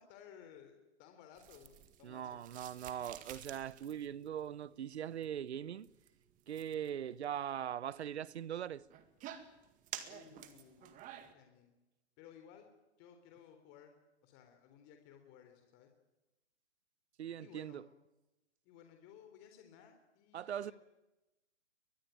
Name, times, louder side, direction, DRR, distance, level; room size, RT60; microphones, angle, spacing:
voice 1, 0.0-2.5 10.1-11.7 12.2-12.7 13.0-13.9 14.2-15.9 17.4-17.9 18.6-20.7, left 8 dB, 30° left, 3.6 m, -58 dB
sound 1, 1.4-11.3, right 11 dB, 20° right, 2.0 m, -53 dB
voice 2, 2.0-5.9 6.5-8.8 17.2-17.8 20.3-20.7, right 9 dB, 70° right, 1.0 m, -41 dB
23.0 x 21.0 x 9.2 m
hypercardioid pair, 135°, 35 cm